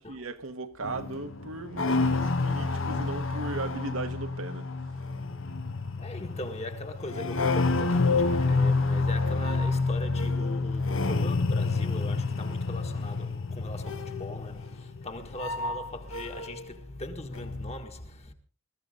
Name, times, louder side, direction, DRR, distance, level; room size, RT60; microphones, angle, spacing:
voice 1, 0.0-4.7, right 2 dB, 75° right, 1.4 m, -37 dB
sound 1, 0.8-16.6 16.9-17.7, left 3 dB, 70° left, 1.1 m, -29 dB
voice 2, 6.0-18.3, left 1 dB, 30° left, 1.7 m, -40 dB
21.5 x 14.0 x 3.8 m
head